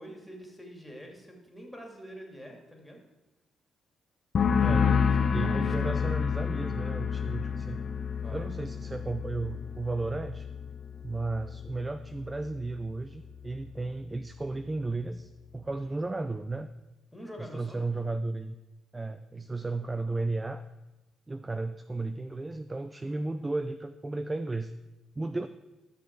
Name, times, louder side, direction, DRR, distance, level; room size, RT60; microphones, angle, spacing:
voice 1, 0.0-3.0 4.6-5.1 5.4-6.1 8.2-8.5 17.1-17.8, equal, ahead, 0 dB, 2.4 m, -46 dB
sound 1, 4.3-11.8 12.1-12.6, left 6 dB, 50° left, 0.6 m, -29 dB
voice 2, 4.6-4.9 5.3-7.8 8.3-10.5 11.0-16.7 17.4-18.6 18.9-20.6 21.3-24.7 25.2-25.5, right 2 dB, 20° right, 11 dB, 0.4 m, -34 dB
12.0 x 6.5 x 4.6 m, 1.0 s
cardioid pair, 90°, 0 cm